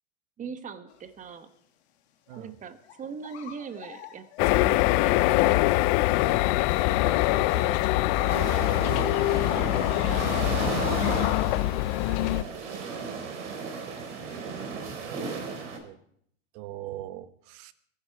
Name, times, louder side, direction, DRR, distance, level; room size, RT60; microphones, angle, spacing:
voice 1, 0.4-1.5 2.3-5.7 6.8-7.8 8.2-8.5 9.1-10.6, right 6 dB, 20° right, 10 dB, 1.3 m, -41 dB
sound 1, 0.9-1.3 1.6-1.7 2.3-2.4 2.8-6.2, left 10 dB, 60° left, 2.4 m, -47 dB
sound 2, 4.4-12.4, left 18 dB, 40° left, 0.6 m, -24 dB
sound 3, 8.3-15.8, right 5 dB, 65° right, 4.1 m, -34 dB
voice 2, 16.5-17.7, right 13 dB, 45° right, 14 dB, 1.2 m, -41 dB
22.5 x 11.0 x 4.7 m, 0.69 s
hypercardioid pair, 115°, 38 cm